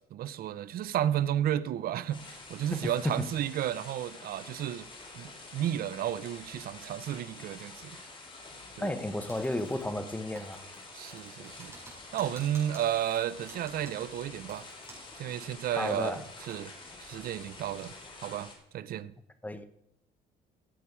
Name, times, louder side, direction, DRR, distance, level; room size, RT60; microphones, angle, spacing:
voice 1, 0.1-4.9 5.1-7.9 8.8-9.0 10.9-11.7 12.1-14.7 15.2-16.7 17.0-17.9 18.2-19.1, right 11 dB, 60° right, 0.7 m, -32 dB
sound 1, 2.1-18.6, left 3 dB, 30° left, 3.3 m, -48 dB
voice 2, 2.7-3.3 8.8-10.6 15.7-16.2 19.4-19.6, left 1 dB, 10° left, 1.1 m, -33 dB
Typing, 9.3-10.1 10.4-15.2 15.5-15.6 16.0-16.6, right 2 dB, 15° right, 6.0 m, -52 dB
15.0 x 8.4 x 4.8 m
cardioid pair, 110°, 17 cm